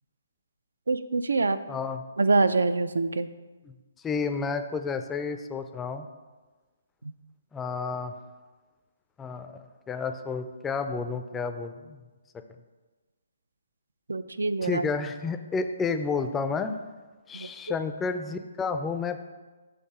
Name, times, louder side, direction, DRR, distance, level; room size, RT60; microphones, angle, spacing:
voice 1, 0.9-1.6 2.2-3.3 7.0-7.1 14.1-14.8 17.3-17.5, right 3 dB, 85° right, 12 dB, 0.3 m, -25 dB
voice 2, 1.7-2.0 3.7-3.8 4.0-6.1 7.5-8.1 9.2-12.0 14.6-16.8 17.3-19.2, left 4 dB, 10° left, 8 dB, 0.3 m, -31 dB
6.5 x 3.3 x 5.5 m, 1.3 s
hypercardioid pair, 145°, 0 cm